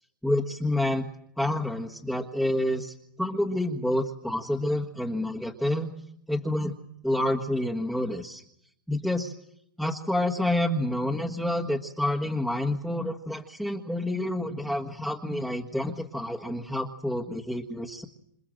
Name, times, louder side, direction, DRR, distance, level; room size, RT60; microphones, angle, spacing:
voice 1, 0.2-1.1 1.4-5.9 6.3-6.8 7.0-8.4 8.9-9.3 9.8-18.0, left 1 dB, ahead, -1 dB, 1.6 m, -28 dB
27.5 x 27.5 x 7.7 m, 0.73 s
hypercardioid pair, 130°, 11 cm